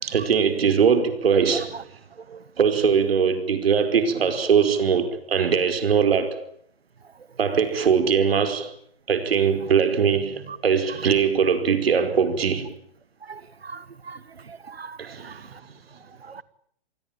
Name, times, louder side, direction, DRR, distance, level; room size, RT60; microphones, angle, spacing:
voice 1, 0.0-1.8 2.6-6.4 7.4-8.7 9.1-12.7 15.0-15.5, right 6 dB, 75° right, 4.9 m, -21 dB
voice 2, 13.3-14.2 14.5-15.0 15.2-15.3 16.3-16.4, right 5 dB, 90° right, 1.5 m, -38 dB
28.0 x 20.5 x 9.0 m
hypercardioid pair, 125°, 30 cm